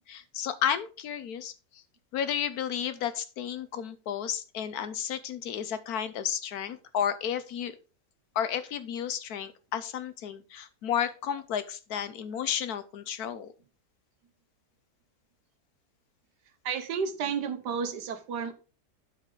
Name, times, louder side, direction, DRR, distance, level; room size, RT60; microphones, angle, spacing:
voice 1, 0.1-1.8 2.1-7.8 8.4-13.5, left 9 dB, 70° left, 13 dB, 1.1 m, -32 dB
voice 2, 16.6-18.5, right 6 dB, 75° right, 9 dB, 1.5 m, -31 dB
12.0 x 5.0 x 3.8 m, 0.34 s
omnidirectional pair, 1.8 m